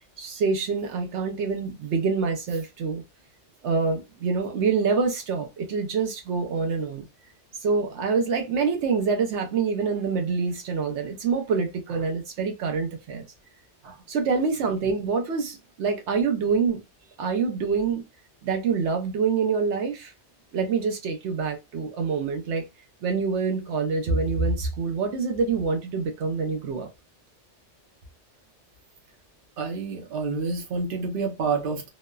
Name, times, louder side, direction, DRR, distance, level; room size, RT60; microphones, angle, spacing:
voice 1, 0.2-3.0 3.6-7.1 7.6-13.2 14.1-16.8 17.2-18.0 18.4-20.1 20.5-22.7 23.0-26.9, right 5 dB, 80° right, 0.9 m, -26 dB
voice 2, 29.6-31.8, right 4 dB, 55° right, 0.9 m, -29 dB
3.0 x 2.1 x 2.2 m
omnidirectional pair, 1.2 m